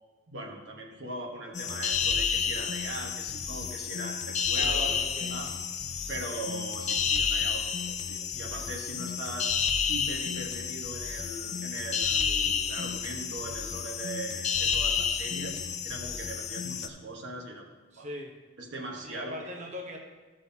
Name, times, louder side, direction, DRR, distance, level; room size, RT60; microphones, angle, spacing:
voice 1, 0.3-5.0 5.3-5.5 6.1-9.5 9.9-17.7 18.0-18.1 18.6-19.6, right 2 dB, 75° right, 1 dB, 1.3 m, -40 dB
sound 1, 1.5-16.9, left 6 dB, 40° left, 0.5 m, -30 dB
voice 2, 4.6-5.3 17.9-18.3 19.0-20.0, equal, 40° right, 0 dB, 0.9 m, -39 dB
13.5 x 6.2 x 2.8 m, 1.3 s
head